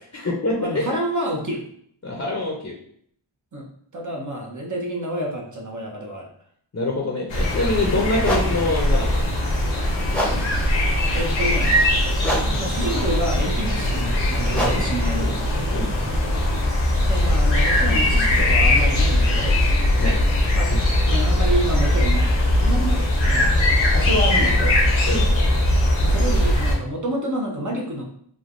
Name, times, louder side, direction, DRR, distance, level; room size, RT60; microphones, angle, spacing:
voice 1, 0.0-1.0 2.0-2.7 6.7-9.1 15.1-15.3 15.7-15.9 20.0-20.2 25.1-25.3, left 2 dB, 30° left, -2 dB, 0.6 m, -25 dB
voice 2, 0.6-1.6 3.5-6.3 11.1-11.8 12.6-15.3 17.1-19.6 20.5-20.7 21.0-23.6 23.9-24.8 26.0-28.0, right 1 dB, 40° right, -1 dB, 0.8 m, -28 dB
sound 1, 7.3-26.7, left 1 dB, 80° left, 0.9 m, -20 dB
sound 2, 8.2-17.0, equal, ahead, 0.8 m, -31 dB
3.2 x 2.3 x 2.5 m, 0.64 s
cardioid pair, 40°, 47 cm